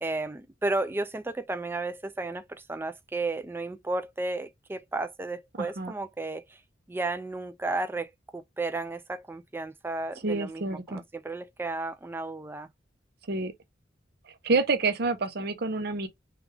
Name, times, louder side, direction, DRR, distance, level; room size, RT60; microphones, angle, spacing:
voice 1, 0.0-6.6 6.9-12.7, right 2 dB, 10° right, 0.3 m, -33 dB
voice 2, 5.6-5.9 10.2-11.0 13.3-13.5 14.4-16.1, right 3 dB, 60° right, 0.7 m, -28 dB
3.3 x 2.3 x 3.2 m
head